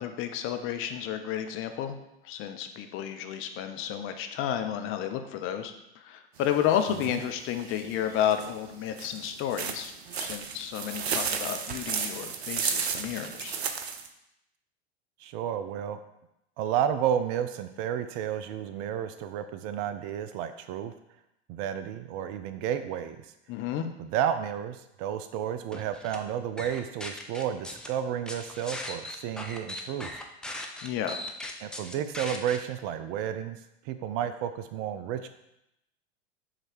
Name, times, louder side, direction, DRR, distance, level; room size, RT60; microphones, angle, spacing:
voice 1, 0.0-2.0 2.2-13.6 23.5-23.9 30.8-31.2, left 10 dB, 40° left, 7 dB, 0.8 m, -31 dB
sound 1, 6.4-14.1, right 6 dB, 75° right, 0.7 m, -34 dB
voice 2, 15.2-16.0 16.6-20.9 21.5-23.3 24.0-30.1 31.6-33.6 33.9-35.3, right 9 dB, 45° right, 10 dB, 0.5 m, -31 dB
sound 2, 25.7-26.2 26.6-27.9 28.3-32.6, left 1 dB, ahead, 0.6 m, -38 dB
7.5 x 3.2 x 4.6 m, 0.84 s
figure-of-eight pair, 90°, 32 cm